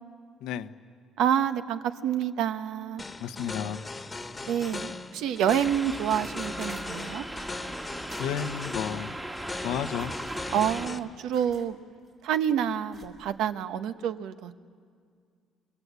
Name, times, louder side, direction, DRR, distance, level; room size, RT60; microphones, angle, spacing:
voice 1, 0.4-0.7 3.2-3.8 8.2-9.2 9.6-10.1 10.6-10.7, left 9 dB, 85° left, 1.0 m, -32 dB
voice 2, 1.2-3.0 4.5-7.3 10.5-11.8 12.2-14.5, right 9 dB, 75° right, 1.1 m, -28 dB
sound 1, 3.0-11.0, left 3 dB, 15° left, 1.4 m, -39 dB
sound 2, 5.2-5.5 6.2-7.2 8.1-9.0 10.0-10.8 11.3-11.7 12.0-12.3 12.9-13.4, right 5 dB, 45° right, 4.8 m, -52 dB
sound 3, 5.6-10.9, right 1 dB, 10° right, 1.6 m, -38 dB
29.5 x 22.5 x 8.3 m
cardioid pair, 135°, 0 cm